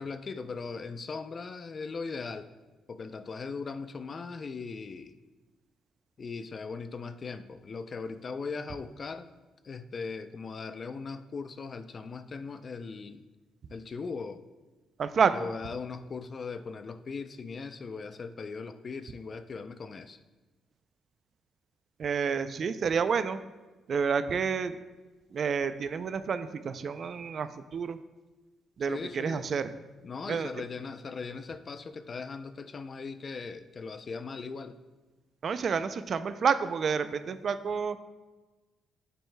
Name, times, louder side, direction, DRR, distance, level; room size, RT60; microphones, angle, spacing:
voice 1, 0.0-2.5 2.9-5.1 6.2-9.3 9.6-13.2 13.7-14.4 15.3-20.2 28.9-29.5 30.0-34.8, left 4 dB, 40° left, 11 dB, 0.4 m, -39 dB
voice 2, 15.0-15.5 22.0-23.4 23.9-24.7 25.3-28.0 28.8-29.7 30.3-30.5 35.4-38.0, right 6 dB, 50° right, 12 dB, 0.4 m, -29 dB
9.1 x 7.7 x 2.2 m, 1.2 s
cardioid pair, 90°, 0 cm